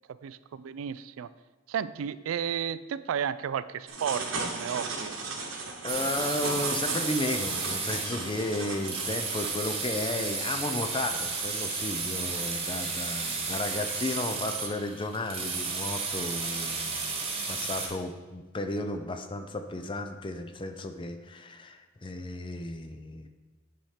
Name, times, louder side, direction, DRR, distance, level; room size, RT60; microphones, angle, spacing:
voice 1, 0.1-1.3 1.7-5.2, right 8 dB, 85° right, 15 dB, 0.3 m, -33 dB
sound 1, 3.9-9.5, right 3 dB, 70° right, 1.2 m, -36 dB
voice 2, 5.8-17.2 17.5-23.3, left 2 dB, 25° left, 8 dB, 0.5 m, -34 dB
sound 2, 5.9-17.9, right 4 dB, 25° right, 1.2 m, -33 dB
9.1 x 4.3 x 4.9 m, 1.3 s
head